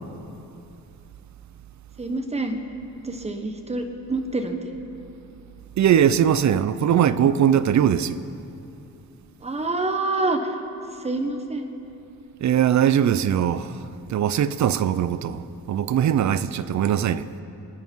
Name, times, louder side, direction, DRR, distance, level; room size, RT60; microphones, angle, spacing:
voice 1, 2.0-2.6 3.0-4.6 9.4-10.5 11.0-11.6, right 2 dB, 20° right, 1.3 m, -26 dB
voice 2, 5.8-8.2 12.4-17.3, right 9 dB, 55° right, 0.6 m, -21 dB
25.0 x 9.6 x 4.6 m
cardioid pair, 135°, 35 cm